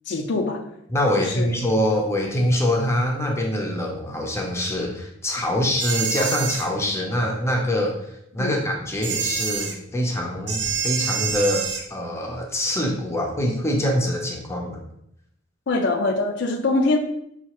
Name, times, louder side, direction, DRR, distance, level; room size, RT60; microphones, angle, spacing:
voice 1, 0.1-0.6 1.2-1.5 8.4-8.6 15.7-17.0, left 2 dB, 65° left, 4 dB, 0.5 m, -23 dB
voice 2, 0.9-14.8, left 1 dB, 15° left, 0 dB, 0.6 m, -24 dB
sound 1, 5.8-6.7 9.0-9.7 10.5-11.8, right 6 dB, 60° right, 0.6 m, -26 dB
5.6 x 2.4 x 2.9 m, 0.75 s
head